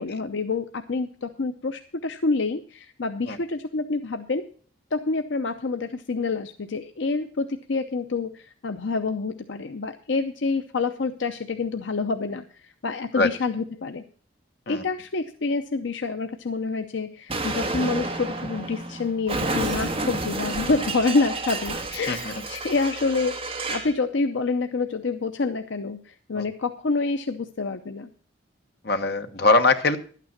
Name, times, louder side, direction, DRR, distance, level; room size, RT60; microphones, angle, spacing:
voice 1, 0.0-4.4 4.9-14.0 14.7-23.4 23.7-28.1, left 3 dB, 70° left, 7 dB, 0.7 m, -27 dB
Explosion, 17.3-24.0, right 2 dB, 30° right, 1.4 m, -30 dB
voice 2, 28.8-30.0, left 3 dB, 55° left, 7 dB, 1.2 m, -22 dB
11.5 x 9.3 x 5.8 m, 0.44 s
head